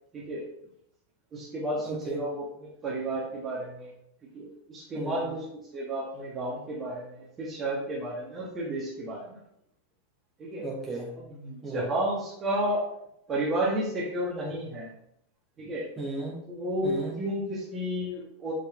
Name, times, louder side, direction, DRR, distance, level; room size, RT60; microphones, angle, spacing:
voice 1, 1.3-3.9 4.3-9.4 10.4-10.6 11.2-12.8 13.3-14.9 15.6-15.8 16.5-18.5, right 1 dB, 25° right, -5 dB, 1.6 m, -32 dB
voice 2, 1.8-2.2 4.9-5.3 10.6-11.2 11.6-11.9 16.0-16.5 16.8-17.2, right 2 dB, 5° right, -5 dB, 2.1 m, -36 dB
6.5 x 5.4 x 3.4 m, 0.74 s
figure-of-eight pair, 90°, 0 cm